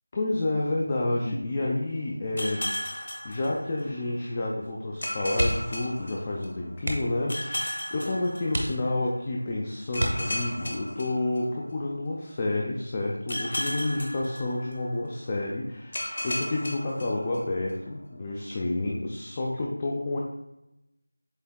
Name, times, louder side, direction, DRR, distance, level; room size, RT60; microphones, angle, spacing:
voice 1, 0.1-20.2, left 2 dB, 20° left, -2 dB, 0.4 m, -30 dB
sound 1, 2.4-4.1 5.0-6.8 7.3-9.0 9.9-11.9 13.3-15.1 15.9-17.7, left 1 dB, 50° left, 0.9 m, -35 dB
sound 2, 5.3-5.8 6.1-6.3 6.8-7.3 7.9-8.0 8.5-9.2 9.9-10.7 12.3-12.6 13.0-13.1, right 1 dB, 50° right, 0.8 m, -31 dB
7.7 x 2.8 x 2.2 m, 0.88 s
figure-of-eight pair, 170°, 0 cm